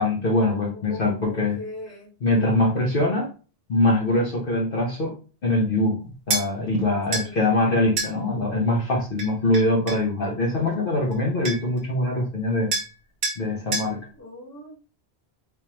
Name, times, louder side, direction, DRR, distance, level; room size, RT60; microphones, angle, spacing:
voice 1, 0.0-1.6 2.2-3.3 3.7-5.1 5.4-6.0 6.3-12.7 13.4-14.0, left 2 dB, 55° left, -2 dB, 1.0 m, -23 dB
voice 2, 0.7-2.1 7.1-7.4 14.2-14.8, left 1 dB, 15° left, -3 dB, 1.3 m, -40 dB
sound 1, 6.3-6.5 7.1-7.3 8.0-8.1 9.2-10.1 11.1-11.2 11.4-11.8 12.7-12.9 13.2-13.4 13.7-13.9, right 3 dB, 55° right, 1.0 m, -27 dB
3.5 x 3.1 x 2.9 m, 0.36 s
omnidirectional pair, 1.1 m